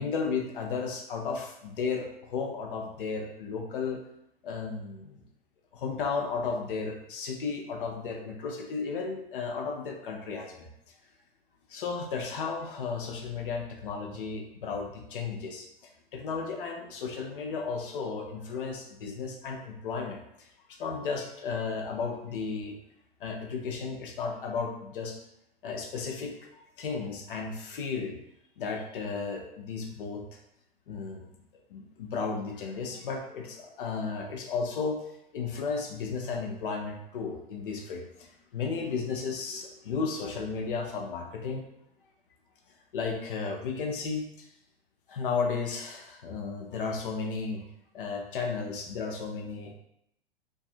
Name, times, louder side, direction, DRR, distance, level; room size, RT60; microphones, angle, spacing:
voice 1, 0.0-4.0 4.4-5.2 5.7-10.7 11.7-15.7 16.1-22.8 23.2-25.2 25.6-28.2 28.6-30.4 30.9-31.3 31.7-35.0 35.3-41.6 42.9-44.5 45.1-47.6 47.9-49.7, left 5 dB, 60° left, 2 dB, 0.6 m, -34 dB
2.5 x 2.4 x 2.4 m, 0.78 s
figure-of-eight pair, 95°, 30 cm